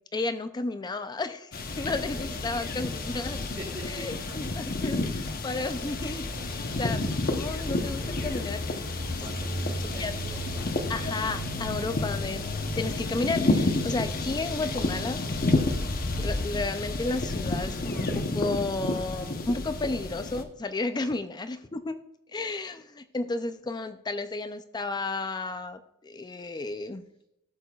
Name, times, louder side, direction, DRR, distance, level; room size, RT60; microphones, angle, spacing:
voice 1, 0.0-1.5 1.8-3.4 3.8-6.3 6.6-8.9 10.0-10.1 10.9-12.5 12.8-15.2 16.2-22.0 22.3-27.0, left 3 dB, 20° left, 11 dB, 0.4 m, -33 dB
sound 1, 1.5-20.4, left 2 dB, 40° left, 0.8 m, -30 dB
voice 2, 1.8-2.3 2.9-3.0 3.6-3.9 5.4-5.8 9.1-10.7 21.0-21.1, right 1 dB, 25° right, -1 dB, 1.1 m, -46 dB
sound 2, 6.3-14.9, equal, 70° left, 2.2 m, -42 dB
13.5 x 6.6 x 2.3 m, 0.86 s
head